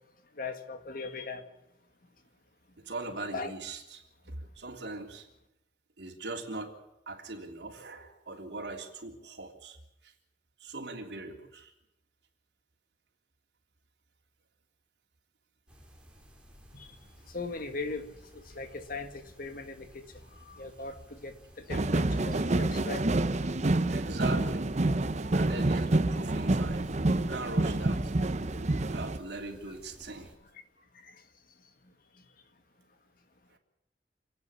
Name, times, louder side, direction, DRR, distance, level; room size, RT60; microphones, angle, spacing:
voice 1, 0.4-1.4 3.3-3.5 16.7-16.9 17.3-20.1 20.4-23.1 31.0-31.2, left 3 dB, 55° left, 7 dB, 1.9 m, -39 dB
voice 2, 2.8-5.3 6.0-6.7 7.1-9.8 10.0-10.1 10.6-11.7 23.6-24.7 25.3-26.9 27.2-28.1 28.9-30.3 33.5-33.6, right 2 dB, 75° right, 1 dB, 3.5 m, -40 dB
sound 1, 15.7-30.3, equal, 5° right, 3.9 m, -54 dB
sound 2, 21.7-29.2, right 2 dB, 40° right, 0.8 m, -28 dB
28.5 x 9.6 x 9.8 m, 0.86 s
head